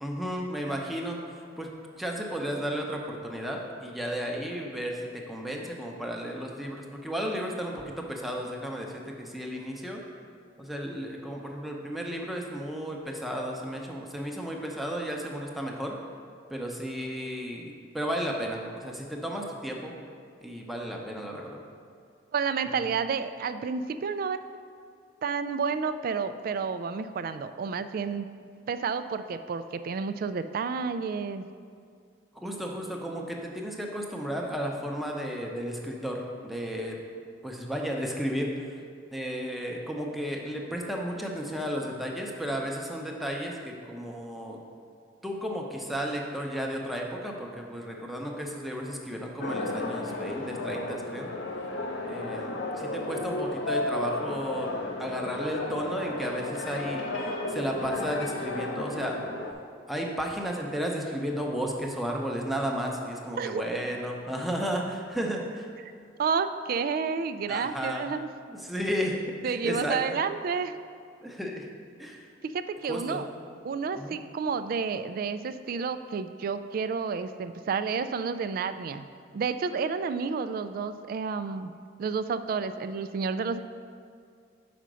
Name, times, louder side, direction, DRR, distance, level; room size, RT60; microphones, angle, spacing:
voice 1, 0.0-1.7 2.0-10.0 10.6-16.0 16.5-19.9 20.4-21.6 22.7-22.9 32.3-37.0 37.4-38.8 39.1-44.6 45.2-51.3 52.0-54.7 55.0-59.2 59.9-65.7 67.5-68.1 68.5-70.2 71.2-71.7 72.0-72.3 72.8-73.3 73.9-74.2, equal, ahead, -1 dB, 0.7 m, -33 dB
voice 2, 22.3-24.4 25.2-28.3 28.7-31.5 63.4-63.6 66.2-68.3 69.4-70.8 72.4-73.3 73.6-79.1 79.3-81.7 82.0-83.6, right 5 dB, 50° right, 11 dB, 0.3 m, -30 dB
sound 1, 49.4-59.5, left 2 dB, 85° left, 0.7 m, -33 dB
5.6 x 5.1 x 6.2 m, 2.3 s
head